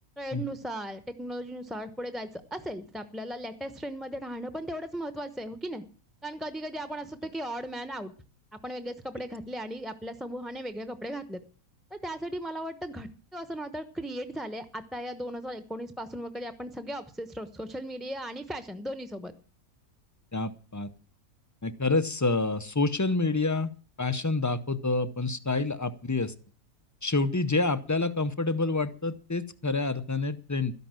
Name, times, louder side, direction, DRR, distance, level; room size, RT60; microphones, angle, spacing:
voice 1, 0.2-5.8 6.2-8.1 8.5-11.4 11.9-19.3, equal, ahead, 10 dB, 0.8 m, -37 dB
voice 2, 20.3-20.9 21.6-23.7 24.0-26.3 27.0-30.7, left 3 dB, 30° left, 14 dB, 0.3 m, -28 dB
13.0 x 11.0 x 7.6 m, 0.39 s
omnidirectional pair, 1.5 m